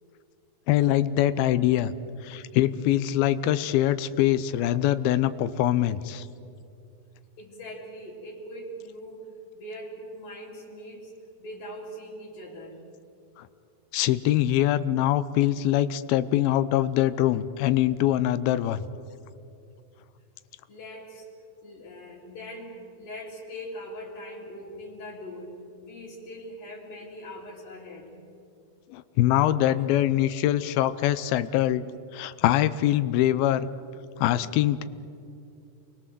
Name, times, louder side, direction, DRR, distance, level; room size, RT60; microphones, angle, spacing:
voice 1, 0.7-1.9 2.2-6.3 13.4-13.5 13.9-18.8 28.9-31.8 32.1-33.7 34.2-34.8, left 13 dB, 90° left, 14 dB, 2.7 m, -23 dB
voice 2, 7.4-11.1 11.4-12.9 20.7-21.3 21.6-25.5 25.8-28.1, equal, 70° left, -6 dB, 4.3 m, -41 dB
29.0 x 22.5 x 7.6 m, 2.6 s
omnidirectional pair, 4.2 m